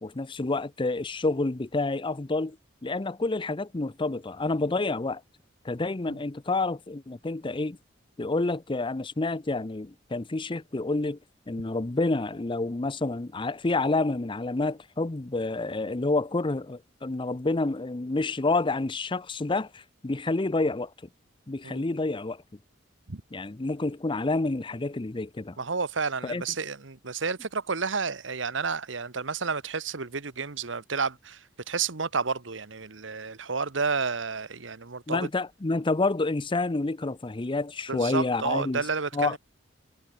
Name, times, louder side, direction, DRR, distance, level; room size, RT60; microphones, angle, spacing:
voice 1, 0.0-2.6 2.8-5.2 5.6-7.8 8.2-11.2 11.5-20.9 21.5-22.4 23.3-25.6 26.2-26.4 35.1-38.8 39.1-39.4, left 2 dB, 25° left, 0.7 m, -28 dB
voice 2, 25.6-35.3 37.9-39.4, right 5 dB, 75° right, 1.4 m, -31 dB
head